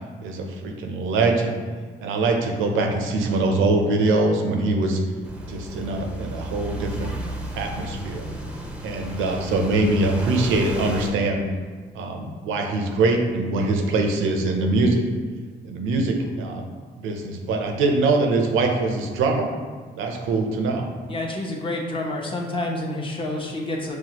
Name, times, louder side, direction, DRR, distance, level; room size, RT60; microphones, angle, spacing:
voice 1, 0.2-1.6 2.0-5.0 5.5-7.1 7.6-8.3 8.8-11.4 11.9-15.0 15.6-16.7 17.0-19.5 20.0-20.9, right 3 dB, 90° right, 2 dB, 0.6 m, -23 dB
sound 1, 5.2-11.1, right 1 dB, 5° right, 0.6 m, -33 dB
voice 2, 21.1-24.0, left 2 dB, 25° left, -2 dB, 0.8 m, -28 dB
6.1 x 2.2 x 2.9 m, 1.5 s
cardioid pair, 90°, 20 cm